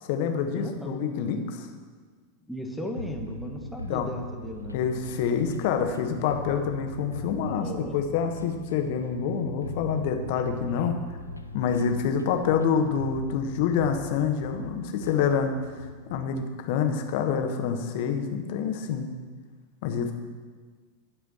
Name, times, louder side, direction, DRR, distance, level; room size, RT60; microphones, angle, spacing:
voice 1, 0.0-1.7 3.9-4.1 4.7-11.0 11.5-15.6 16.1-19.1 19.8-20.1, left 7 dB, 50° left, 5 dB, 1.2 m, -27 dB
voice 2, 0.5-1.0 2.5-5.0 7.6-8.0, equal, ahead, 1 dB, 1.3 m, -36 dB
sound 1, 3.0-16.3, left 1 dB, 85° left, 0.5 m, -40 dB
15.0 x 5.0 x 6.3 m, 1.5 s
figure-of-eight pair, 90°, 0 cm